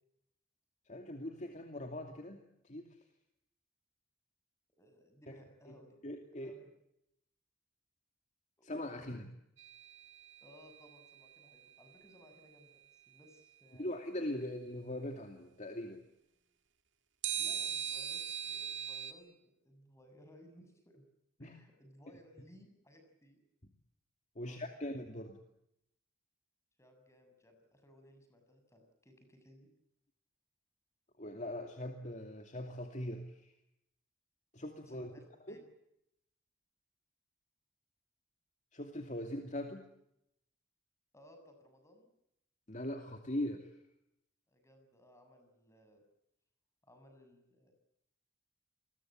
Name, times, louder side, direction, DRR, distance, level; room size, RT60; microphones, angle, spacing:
voice 1, 0.9-2.9 5.3-5.4 5.7-5.8 6.0-6.6 8.6-9.3 13.8-16.0 21.4-21.6 24.4-25.4 31.2-33.5 34.5-35.1 35.5-35.6 38.7-39.9 42.7-43.7, left 1 dB, 40° left, 4 dB, 2.5 m, -41 dB
voice 2, 4.8-5.9 6.4-6.7 8.6-8.7 10.4-13.9 17.3-21.1 21.4-23.4 24.4-24.6 26.8-29.7 34.9-35.6 41.1-42.1 44.5-46.0 46.8-47.7, equal, 15° left, 6 dB, 7.2 m, -61 dB
sound 1, 9.6-10.8 17.2-19.1, right 9 dB, 65° right, 2.1 m, -39 dB
29.0 x 22.0 x 7.5 m, 0.81 s
head